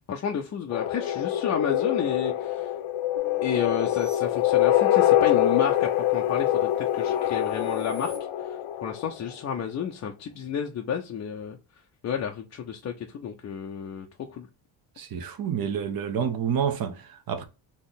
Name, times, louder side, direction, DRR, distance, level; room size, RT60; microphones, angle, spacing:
voice 1, 0.1-2.7 3.4-8.1 8.4-11.6 12.0-14.5, left 7 dB, 35° left, 0.5 m, -31 dB
sound 1, 0.7-9.3, left 12 dB, 70° left, 0.9 m, -24 dB
sound 2, 3.2-5.1 5.6-8.2, left 1 dB, 70° right, 1.7 m, -50 dB
voice 2, 15.0-17.4, right 7 dB, 45° right, 0.8 m, -28 dB
4.2 x 2.9 x 3.9 m
cardioid pair, 135°, 48 cm